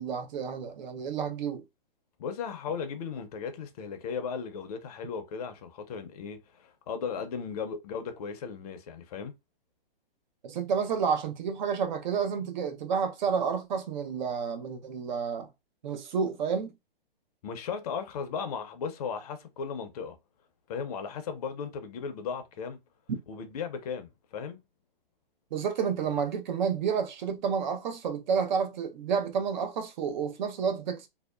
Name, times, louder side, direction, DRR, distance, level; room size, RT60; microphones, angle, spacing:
voice 1, 0.0-1.6 10.4-15.5 15.8-16.7 25.5-31.1, right 6 dB, 50° right, 0.7 m, -30 dB
voice 2, 2.2-9.3 17.4-20.2 20.7-22.8 23.3-24.6, left 6 dB, 40° left, 0.6 m, -36 dB
2.7 x 2.0 x 2.3 m
hypercardioid pair, 135°, 29 cm